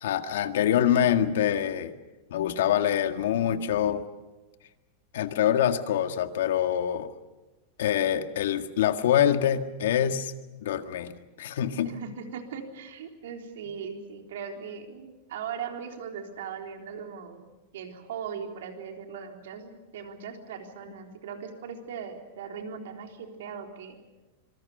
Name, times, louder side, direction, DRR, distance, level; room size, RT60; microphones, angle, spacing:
voice 1, 0.0-1.9 2.3-4.0 5.1-7.1 7.8-10.3 10.6-11.9, left 10 dB, 75° left, 8 dB, 1.9 m, -25 dB
voice 2, 11.8-17.4 17.7-24.0, right 6 dB, 75° right, 4 dB, 3.8 m, -39 dB
26.0 x 24.0 x 6.7 m, 1.1 s
supercardioid pair, 170°, 0 cm